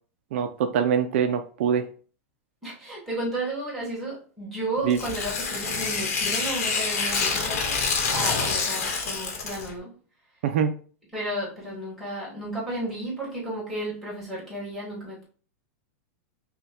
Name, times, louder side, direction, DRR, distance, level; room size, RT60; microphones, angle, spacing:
voice 1, 0.3-1.9 4.8-5.0 10.4-10.8, right 7 dB, 60° right, 8 dB, 0.4 m, -24 dB
voice 2, 2.6-7.6 8.1-9.9 11.1-15.3, right 1 dB, ahead, -6 dB, 1.5 m, -33 dB
Tearing, 4.9-9.7, left 4 dB, 90° left, 1.1 m, -27 dB
5.5 x 2.2 x 2.8 m, 0.40 s
supercardioid pair, 170°, 8 cm